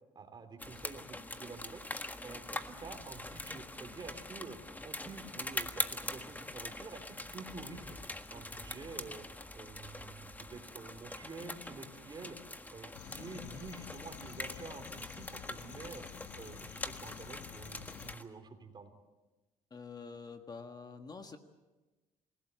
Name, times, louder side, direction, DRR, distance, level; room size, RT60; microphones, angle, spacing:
voice 1, 0.1-1.8 2.2-4.6 4.8-8.0 8.3-9.2 9.5-12.4 12.7-16.0 16.3-18.9, right 4 dB, 35° right, 8 dB, 3.3 m, -48 dB
sound 1, 0.6-18.2, left 2 dB, 10° left, 1.6 m, -43 dB
sound 2, 12.9-18.1, left 13 dB, 70° left, 0.7 m, -50 dB
voice 2, 19.7-21.4, left 5 dB, 30° left, 7 dB, 1.6 m, -47 dB
27.5 x 17.0 x 8.2 m, 1.2 s
cardioid pair, 100°, 13 cm